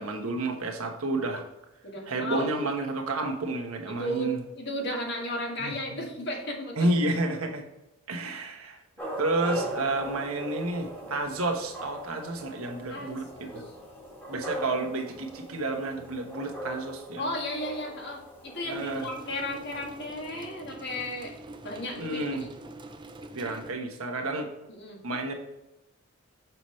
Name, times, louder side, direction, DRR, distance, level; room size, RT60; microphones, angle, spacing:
voice 1, 0.0-1.4 2.1-4.4 5.6-6.0 6.8-7.6 8.1-8.8 9.2-13.6 14.3-17.3 18.6-19.1 22.0-22.5 23.3-24.5 25.0-25.3, right 2 dB, 80° right, 3 dB, 1.2 m, -30 dB
voice 2, 1.8-2.5 3.9-6.9 12.9-13.7 14.6-14.9 17.2-21.3 21.6-22.3 24.7-25.0, left 1 dB, 50° left, 0 dB, 1.6 m, -34 dB
sound 1, 9.0-20.1, right 1 dB, 10° left, 1.8 m, -40 dB
sound 2, 18.7-23.7, right 1 dB, 20° right, 0.4 m, -45 dB
6.8 x 5.9 x 3.2 m, 0.94 s
head